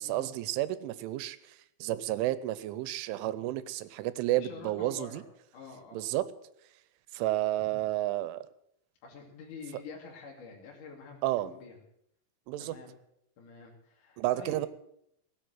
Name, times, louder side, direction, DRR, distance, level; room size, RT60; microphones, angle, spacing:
voice 1, 0.0-5.2 5.9-6.3 7.1-8.4 11.2-11.6 12.5-12.7 14.2-14.7, right 15 dB, 90° right, 15 dB, 3.2 m, -31 dB
voice 2, 4.3-5.2 5.5-6.1 9.0-11.8 12.6-12.9 13.4-14.6, left 5 dB, 50° left, -1 dB, 3.7 m, -47 dB
18.0 x 8.2 x 8.0 m, 0.74 s
omnidirectional pair, 5.4 m